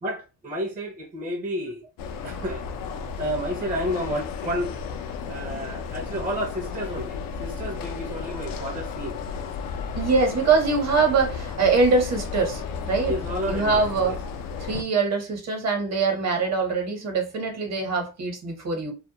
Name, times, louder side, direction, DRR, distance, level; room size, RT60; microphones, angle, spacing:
voice 1, 0.0-1.9 2.2-2.7 3.2-4.7 5.3-9.2 13.1-14.2, equal, 25° right, 0.6 m, -31 dB
sound 1, 2.0-14.8, left 5 dB, 75° left, 0.5 m, -33 dB
voice 2, 9.9-13.2 13.5-14.2 14.6-18.9, right 4 dB, 50° right, 1.0 m, -23 dB
2.3 x 2.1 x 2.8 m
cardioid pair, 90°, 33 cm